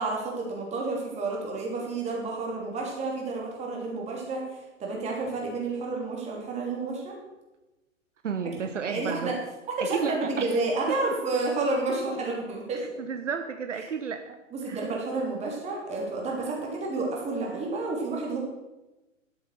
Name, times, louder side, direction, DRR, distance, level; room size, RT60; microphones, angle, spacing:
voice 1, 0.0-4.4 4.8-7.1 8.9-9.3 9.7-12.8 13.7-13.9 14.5-18.4, right 3 dB, 15° right, -1 dB, 2.9 m, -30 dB
voice 2, 8.2-9.4 9.9-10.6 12.7-14.9, right 6 dB, 65° right, 8 dB, 0.9 m, -33 dB
11.5 x 7.5 x 6.4 m, 1.1 s
figure-of-eight pair, 115°, 39 cm